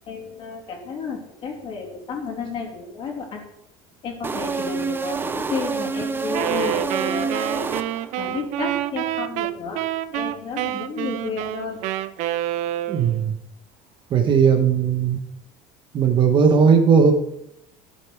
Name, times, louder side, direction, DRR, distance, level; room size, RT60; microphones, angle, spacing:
voice 1, 0.1-3.4 4.0-7.7 8.2-9.8 10.1-11.8, left 5 dB, 40° left, 1 dB, 3.2 m, -32 dB
sound 1, 4.2-8.3, right 4 dB, 15° right, 0.5 m, -28 dB
Wind instrument woodwind instrument, 6.3-13.3, right 14 dB, 60° right, 0.6 m, -27 dB
voice 2, 12.9-13.3 14.1-15.2 15.9-17.1, right 6 dB, 35° right, 6 dB, 1.2 m, -17 dB
13.5 x 7.0 x 4.7 m, 0.82 s
cardioid pair, 145°, 14 cm